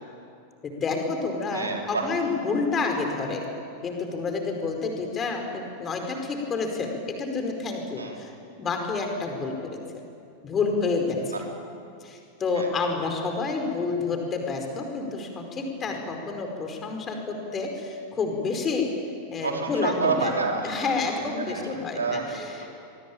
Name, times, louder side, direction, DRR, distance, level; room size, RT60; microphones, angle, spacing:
voice 1, 0.6-3.4 3.8-8.3 8.6-10.1 10.4-11.2 12.0-18.9 19.3-20.3 20.6-22.5, left 4 dB, 25° left, 4 dB, 4.9 m, -29 dB
voice 2, 1.5-2.1 8.0-8.2 11.3-11.4 12.5-12.7 19.4-21.1 21.4-21.6 22.0-22.7, right 4 dB, 75° right, 1 dB, 4.4 m, -29 dB
24.5 x 23.5 x 9.0 m, 2.5 s
figure-of-eight pair, 90°, 0 cm